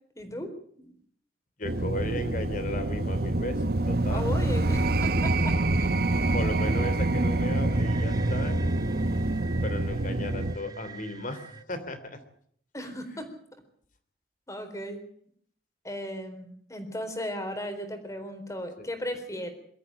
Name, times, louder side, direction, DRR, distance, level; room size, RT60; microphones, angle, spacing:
voice 1, 0.2-0.5 0.8-0.9 2.1-2.2 4.1-5.9 10.1-10.3 12.7-13.3 14.5-15.0 15.8-19.5, equal, 20° left, 7 dB, 4.1 m, -36 dB
voice 2, 1.6-4.3 6.3-8.9 9.6-12.2 12.8-13.2 18.8-18.9, left 1 dB, 50° left, 10 dB, 3.1 m, -36 dB
sound 1, 1.6-10.6, right 2 dB, 60° right, 1.0 m, -26 dB
sound 2, 6.6-11.6, right 2 dB, 20° right, 0.8 m, -37 dB
23.0 x 13.5 x 9.0 m, 0.64 s
head